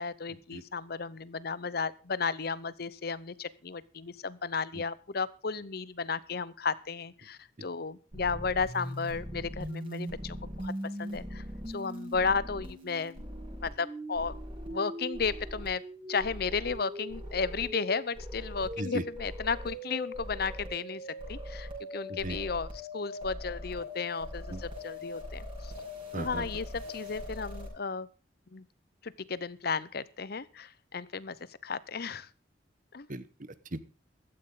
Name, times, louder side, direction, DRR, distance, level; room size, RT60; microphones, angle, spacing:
voice 1, 0.0-10.7 11.0-13.2 13.6-14.3 14.7-15.8 16.1-21.0 21.3-25.7 26.1-28.1 28.5-28.6 29.0-31.4 31.6-32.3 32.9-33.1, left 5 dB, 60° left, 18 dB, 0.8 m, -34 dB
sound 1, 8.1-27.7, equal, 30° right, 7.1 m, -40 dB
voice 2, 26.1-26.5 33.1-33.8, right 1 dB, 45° right, 14 dB, 1.2 m, -37 dB
15.5 x 13.5 x 3.9 m, 0.34 s
head